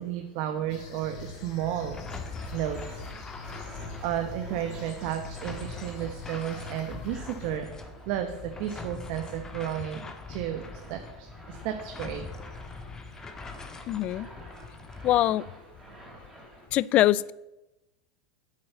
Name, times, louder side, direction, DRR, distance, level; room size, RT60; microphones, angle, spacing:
voice 1, 0.0-2.0 2.5-3.1 4.0-7.7 8.1-12.3, right 11 dB, 60° right, 6 dB, 1.2 m, -33 dB
sound 1, 0.7-7.6, left 4 dB, 60° left, 2.2 m, -45 dB
sound 2, 1.2-15.2, left 4 dB, 20° left, 1.5 m, -43 dB
sound 3, 2.2-16.7, right 1 dB, 10° right, 3.8 m, -49 dB
voice 2, 13.9-14.3 15.0-15.4 16.7-17.3, left 14 dB, 40° left, 22 dB, 0.4 m, -23 dB
8.8 x 8.5 x 7.0 m, 0.98 s
hypercardioid pair, 115°, 3 cm